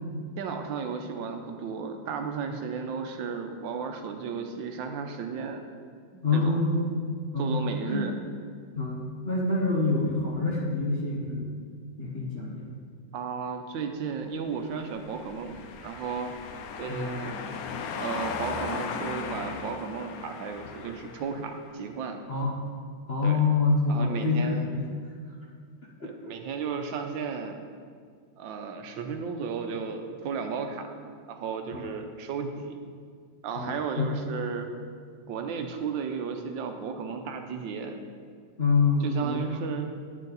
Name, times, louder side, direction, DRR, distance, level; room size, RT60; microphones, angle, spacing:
voice 1, 0.4-5.6 6.3-6.6 7.4-8.2 13.1-16.3 16.8-17.4 18.0-22.2 23.2-23.4 23.9-24.7 26.0-27.6 28.4-32.8 33.4-34.7 35.3-38.0 39.0-39.9, right 6 dB, 85° right, 5 dB, 1.5 m, -34 dB
voice 2, 6.2-7.1 7.3-7.6 7.9-8.0 8.8-11.5 12.0-12.7 16.9-17.2 22.3-22.6 23.1-24.8 26.0-26.1 31.7-31.9 33.5-34.1 38.6-39.5, left 3 dB, 40° left, -3 dB, 1.1 m, -26 dB
sound 1, 14.9-21.6, left 5 dB, 65° left, 0.9 m, -37 dB
9.1 x 8.6 x 4.0 m, 2.1 s
omnidirectional pair, 2.0 m